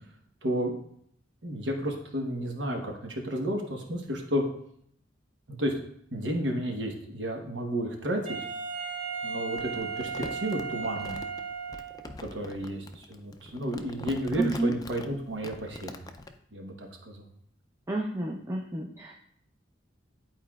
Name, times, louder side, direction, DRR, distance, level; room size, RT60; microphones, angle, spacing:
voice 1, 0.4-0.7 1.4-4.4 5.6-5.7 6.1-8.2 9.2-11.2 12.2-16.0 16.5-17.3, equal, 70° right, 2 dB, 1.2 m, -32 dB
Wind instrument woodwind instrument, 8.2-12.2, right 5 dB, 45° right, 2.0 m, -35 dB
Crumpling crinkling, 9.5-16.3, left 2 dB, 20° left, 0.4 m, -43 dB
voice 2, 14.4-14.7 17.9-19.1, right 2 dB, 15° right, -2 dB, 0.7 m, -30 dB
11.0 x 4.5 x 2.4 m, 0.69 s
head